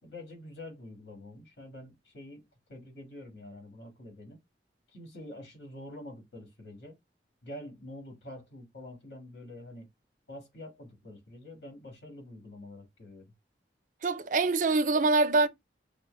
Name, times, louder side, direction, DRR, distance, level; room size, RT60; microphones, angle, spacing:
voice 1, 0.0-4.4 4.9-7.0 7.4-9.9 10.3-13.3, left 1 dB, 75° left, 1.7 m, -46 dB
voice 2, 14.0-15.5, right 3 dB, 45° right, 0.4 m, -24 dB
6.0 x 2.0 x 3.1 m
head